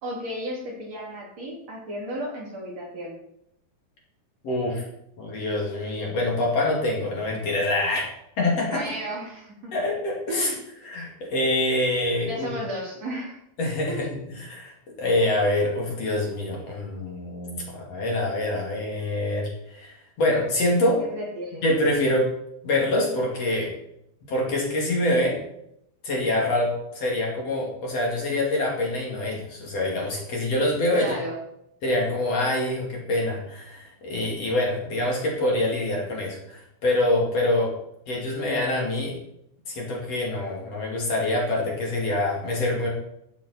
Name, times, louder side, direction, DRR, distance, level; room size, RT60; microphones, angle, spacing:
voice 1, 0.0-3.2 8.7-9.7 10.3-10.6 12.2-13.4 13.9-14.1 21.0-21.6 30.9-31.4, equal, 40° right, -3 dB, 3.8 m, -33 dB
voice 2, 4.4-4.8 5.2-8.1 8.4-8.8 9.7-10.5 10.8-12.5 13.6-21.0 21.6-22.3 22.6-23.7 24.3-25.4 26.0-31.1 31.8-37.7 38.1-39.2 39.7-42.9, left 1 dB, 40° left, -2 dB, 2.9 m, -25 dB
15.0 x 7.4 x 4.3 m, 0.77 s
omnidirectional pair, 5.3 m